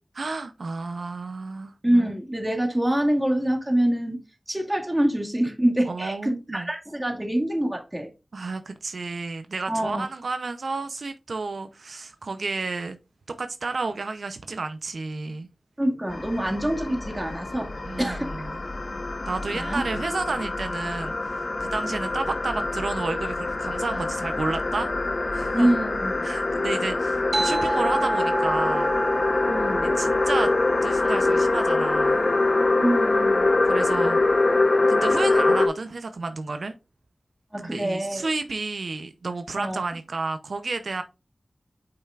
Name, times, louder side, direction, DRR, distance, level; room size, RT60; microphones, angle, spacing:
voice 1, 0.2-1.7 5.9-6.7 8.3-13.0 13.4-15.5 17.9-18.5 19.3-24.9 25.3-25.8 26.2-29.0 30.0-30.5 30.8-32.3 33.6-34.2 34.9-36.7 37.6-41.0, right 3 dB, 85° right, 0.6 m, -31 dB
voice 2, 1.8-4.2 4.5-8.1 9.7-10.1 15.8-17.7 18.0-18.3 19.5-19.8 25.5-26.3 29.5-30.0 32.8-33.5 37.5-38.3 39.6-39.8, right 1 dB, 15° right, 2.0 m, -25 dB
sound 1, 16.1-35.7, left 2 dB, 55° left, 0.9 m, -24 dB
sound 2, 27.3-32.3, right 2 dB, 65° right, 1.2 m, -30 dB
7.8 x 5.7 x 2.4 m
wide cardioid pair, 65°, 0 cm